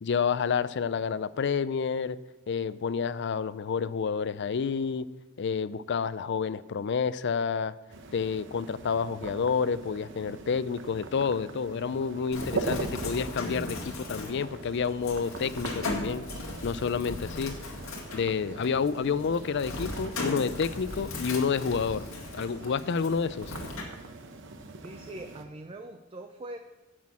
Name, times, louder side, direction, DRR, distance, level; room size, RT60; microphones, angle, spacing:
voice 1, 0.0-2.2 2.5-5.1 5.4-7.7 8.1-16.3 16.6-17.5 18.1-22.0 22.3-23.5, left 6 dB, 60° left, 16 dB, 0.4 m, -29 dB
sound 1, 7.9-25.4, right 3 dB, 65° right, 0.9 m, -41 dB
Bird, 12.3-23.8, left 2 dB, 90° left, 2.0 m, -38 dB
voice 2, 24.8-26.6, right 1 dB, 25° right, 5 dB, 0.6 m, -42 dB
10.5 x 6.4 x 7.1 m, 1.1 s
head